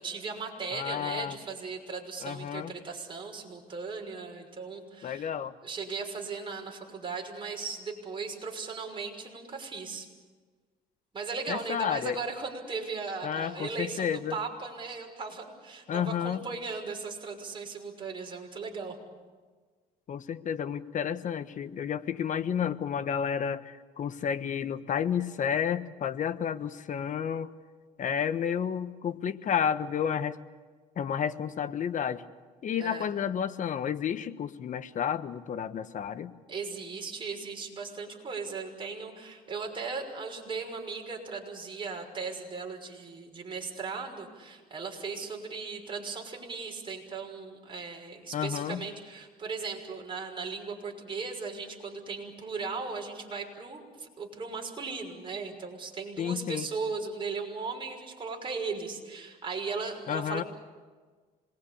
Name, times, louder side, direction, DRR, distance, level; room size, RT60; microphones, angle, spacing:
voice 1, 0.0-5.3 5.6-10.1 11.1-19.0 32.8-33.1 36.5-60.5, right 4 dB, 30° right, 1 dB, 6.0 m, -37 dB
voice 2, 0.7-1.4 2.2-2.7 5.0-5.5 11.5-12.2 13.2-14.4 15.9-16.4 20.1-27.5 28.0-30.4 31.0-32.2 32.6-36.3 48.3-48.8 56.2-56.7 60.1-60.4, left 8 dB, 50° left, 11 dB, 1.3 m, -31 dB
27.0 x 21.0 x 8.6 m, 1.4 s
cardioid pair, 110°, 17 cm